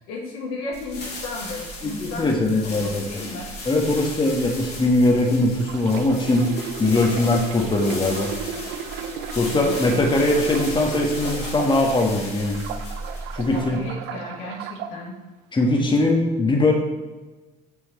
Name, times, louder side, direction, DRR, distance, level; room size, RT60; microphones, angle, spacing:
voice 1, 0.1-3.5 9.5-10.2 13.5-15.2, left 2 dB, 70° left, -1 dB, 2.0 m, -35 dB
sound 1, 0.7-13.9, left 1 dB, 50° left, 2.9 m, -36 dB
voice 2, 1.8-3.0 3.6-6.5 6.8-8.3 9.3-12.6 13.3-13.8 15.5-16.7, left 2 dB, 20° left, 1 dB, 1.6 m, -21 dB
sound 2, 5.5-12.0 12.4-14.9 15.6-15.8, right 8 dB, 60° right, 0.6 m, -34 dB
8.6 x 5.6 x 4.3 m, 1.2 s
hypercardioid pair, 65°, 21 cm